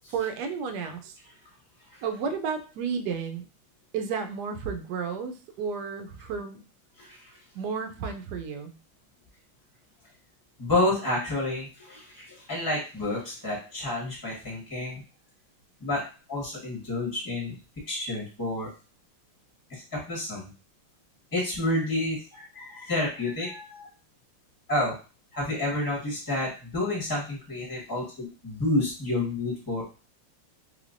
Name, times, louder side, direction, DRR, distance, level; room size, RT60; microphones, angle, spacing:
voice 1, 0.1-1.1 2.0-3.4 3.9-6.6 7.5-8.8, right 6 dB, 80° right, 6 dB, 0.9 m, -32 dB
voice 2, 7.0-7.4 10.6-15.0 15.8-16.0 16.3-17.6 17.9-18.7 19.7-20.5 21.3-23.9 24.7-24.9 25.3-29.9, left 2 dB, 20° left, -4 dB, 0.6 m, -29 dB
3.3 x 3.0 x 2.5 m, 0.34 s
omnidirectional pair, 2.3 m